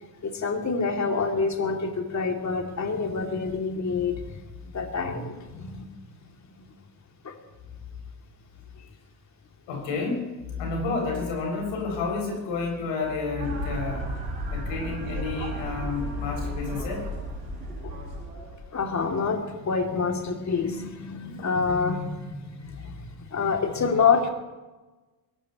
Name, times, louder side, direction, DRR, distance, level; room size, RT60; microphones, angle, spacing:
voice 1, 0.2-4.4 4.7-5.9 7.2-7.3 17.8-17.9 18.7-24.3, left 5 dB, 35° left, 3 dB, 3.0 m, -27 dB
voice 2, 9.7-10.2 10.6-14.1 14.5-17.1 21.4-21.5, left 4 dB, 65° left, 0 dB, 7.2 m, -30 dB
sound 1, 13.4-18.6, equal, 85° right, 4.4 m, -34 dB
22.5 x 19.0 x 3.2 m, 1.2 s
figure-of-eight pair, 55°, 50 cm